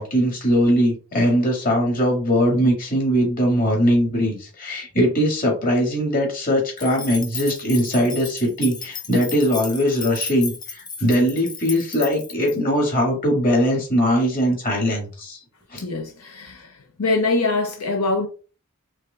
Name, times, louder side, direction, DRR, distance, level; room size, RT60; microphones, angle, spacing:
voice 1, 0.0-15.4 15.7-15.8, equal, 40° left, 1.9 m, -20 dB
sound 1, 6.8-12.5, left 4 dB, 20° left, 0.6 m, -34 dB
voice 2, 15.8-16.7 17.0-18.3, left 3 dB, 85° left, 0.6 m, -23 dB
4.7 x 3.5 x 2.4 m
head